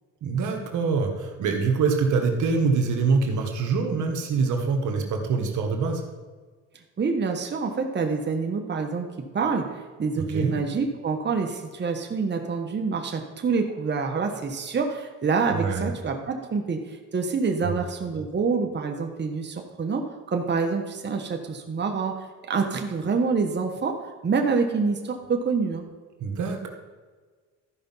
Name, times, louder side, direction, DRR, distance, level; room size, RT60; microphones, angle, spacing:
voice 1, 0.2-6.0 10.1-10.6 15.5-15.9 17.6-17.8 26.2-26.7, right 4 dB, 75° right, 3 dB, 1.5 m, -25 dB
voice 2, 7.0-9.1 9.3-20.0 20.3-24.0 24.2-25.8, right 4 dB, 35° right, 3 dB, 1.2 m, -27 dB
13.0 x 5.2 x 5.6 m, 1.4 s
cardioid pair, 90°, 30 cm